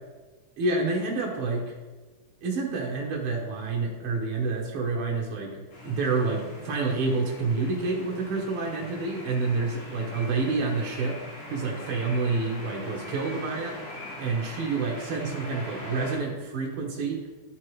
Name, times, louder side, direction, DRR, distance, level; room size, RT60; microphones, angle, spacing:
voice 1, 0.6-1.6 2.4-11.2 11.5-17.2, right 3 dB, 65° right, -2 dB, 1.4 m, -28 dB
sound 1, 5.7-16.2, left 1 dB, 85° left, 3.9 m, -42 dB
12.5 x 4.6 x 3.1 m, 1.3 s
omnidirectional pair, 3.6 m